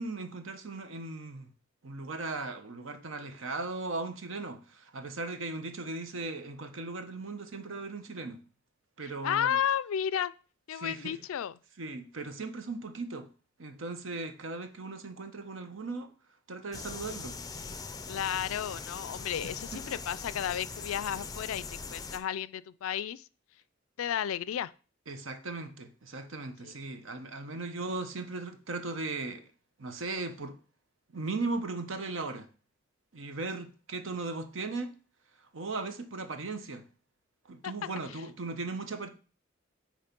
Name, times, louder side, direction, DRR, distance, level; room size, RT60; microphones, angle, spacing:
voice 1, 0.0-1.5 1.8-8.4 9.0-9.6 10.8-11.2 11.8-13.3 13.6-16.1 16.5-17.4 19.7-19.8 25.1-29.5 29.8-30.6 31.1-32.5 33.1-34.9 35.5-36.8 37.5-39.1, right 3 dB, 65° right, 0.9 m, -37 dB
voice 2, 9.2-10.3 10.7-11.5 18.1-23.3 24.0-24.7 26.6-26.7 37.6-37.7, left 9 dB, 80° left, 0.4 m, -32 dB
sound 1, 16.7-22.2, left 4 dB, 20° left, 0.5 m, -41 dB
8.7 x 3.1 x 5.2 m
head